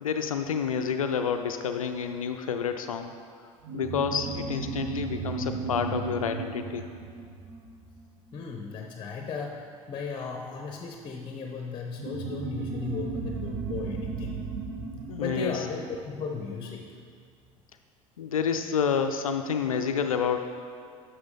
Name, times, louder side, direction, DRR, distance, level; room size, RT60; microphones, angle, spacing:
voice 1, 0.0-3.1 3.7-6.8 15.1-15.7 18.2-20.4, left 7 dB, 80° left, 7 dB, 0.4 m, -29 dB
sound 1, 3.6-8.6 12.0-16.9, right 4 dB, 50° right, 1.0 m, -35 dB
voice 2, 8.3-9.5 9.9-14.4 15.2-16.8, left 5 dB, 25° left, 2 dB, 0.8 m, -36 dB
10.5 x 6.3 x 3.9 m, 2.2 s
figure-of-eight pair, 65°, 18 cm